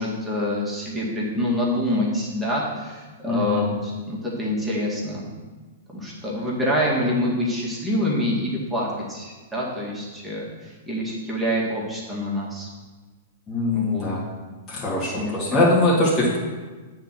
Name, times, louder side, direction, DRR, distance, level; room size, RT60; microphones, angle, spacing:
voice 1, 0.0-5.3 5.9-12.7 13.7-14.1 15.0-15.6, left 1 dB, 5° right, -6 dB, 2.1 m, -26 dB
voice 2, 3.2-3.7 13.5-14.2 14.7-16.4, left 2 dB, 25° left, -6 dB, 2.5 m, -22 dB
8.8 x 3.9 x 6.1 m, 1.3 s
hypercardioid pair, 110°, 0 cm